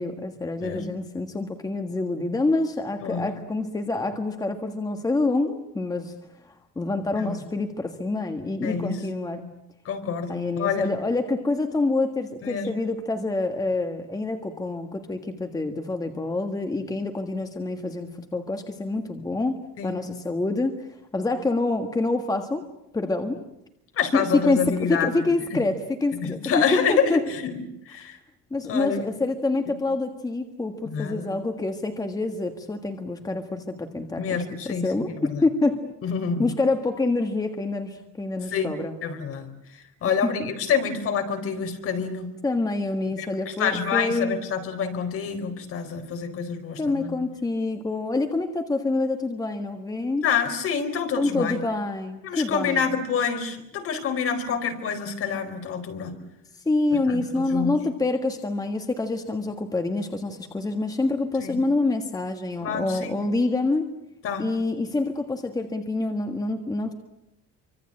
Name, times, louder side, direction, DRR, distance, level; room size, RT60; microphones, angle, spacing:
voice 1, 0.0-6.1 6.4-9.4 10.3-19.6 19.8-22.6 22.9-23.4 24.1-27.2 28.5-35.8 36.4-38.9 40.0-40.1 40.4-40.5 42.4-44.4 46.8-50.2 51.2-52.8 56.6-63.9 64.4-66.9, left 2 dB, 10° left, 6 dB, 1.6 m, -26 dB
voice 2, 8.6-9.0 9.8-10.9 12.4-12.7 19.8-20.0 24.0-25.1 25.5-25.6 26.2-27.5 27.9-28.2 28.7-29.0 30.8-31.3 34.2-35.4 36.0-36.5 38.5-38.7 39.0-39.5 40.0-42.3 43.1-47.2 50.2-51.6 52.2-56.2 56.9-57.7 61.4-61.6 62.6-63.1 64.2-64.5, left 6 dB, 50° left, 6 dB, 4.3 m, -27 dB
27.0 x 25.0 x 8.8 m, 0.84 s
cardioid pair, 165°, 29 cm